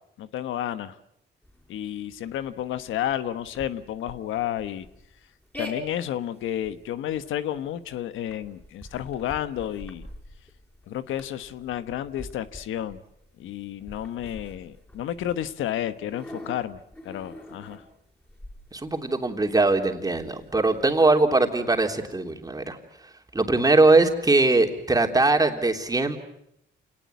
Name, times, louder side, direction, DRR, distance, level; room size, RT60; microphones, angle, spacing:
voice 1, 0.2-0.9 1.7-4.9 5.6-10.1 10.9-13.0 13.4-16.8 17.0-17.8, left 11 dB, 80° left, 12 dB, 1.2 m, -31 dB
sound 1, 1.4-20.9, left 1 dB, 10° left, 5.2 m, -45 dB
voice 2, 18.7-22.8 23.3-26.2, right 2 dB, 20° right, 4 dB, 3.5 m, -21 dB
28.0 x 19.0 x 9.5 m, 0.78 s
cardioid pair, 90°, 20 cm